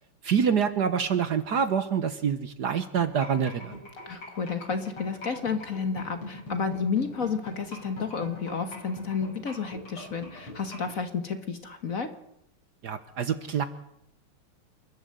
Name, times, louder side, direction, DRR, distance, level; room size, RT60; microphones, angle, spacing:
voice 1, 0.2-3.8 12.8-13.6, right 7 dB, 55° right, 12 dB, 1.4 m, -26 dB
sound 1, 3.0-10.9, left 1 dB, 80° left, 7.7 m, -41 dB
voice 2, 4.1-12.1, left 5 dB, 45° left, 9 dB, 1.6 m, -31 dB
28.0 x 12.0 x 7.8 m, 0.81 s
omnidirectional pair, 2.4 m